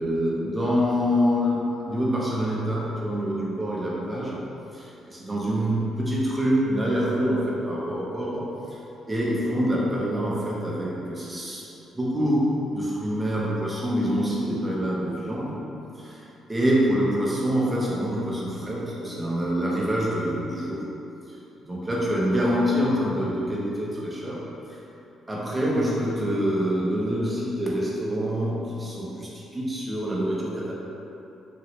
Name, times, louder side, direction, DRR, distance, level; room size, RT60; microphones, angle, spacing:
voice 1, 0.0-4.4 4.7-8.8 9.1-11.6 11.9-15.6 16.0-16.2 16.5-20.8 21.7-24.4 24.7-24.8 25.3-30.7, equal, 15° right, -6 dB, 0.7 m, -26 dB
3.0 x 2.8 x 2.8 m, 2.9 s
cardioid pair, 90°, 0 cm